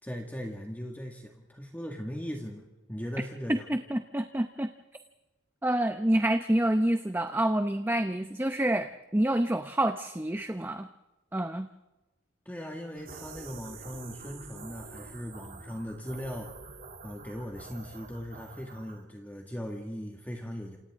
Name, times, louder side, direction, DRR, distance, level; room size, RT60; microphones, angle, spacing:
voice 1, 0.0-3.7 12.5-16.5 17.0-20.8, equal, 10° left, 1 dB, 1.9 m, -39 dB
voice 2, 3.5-4.7 5.6-10.9 11.3-11.7, right 1 dB, 10° right, 8 dB, 0.7 m, -27 dB
sound 1, 13.0-19.0, right 4 dB, 55° right, 3.0 m, -47 dB
28.5 x 27.5 x 3.7 m, 1.1 s
head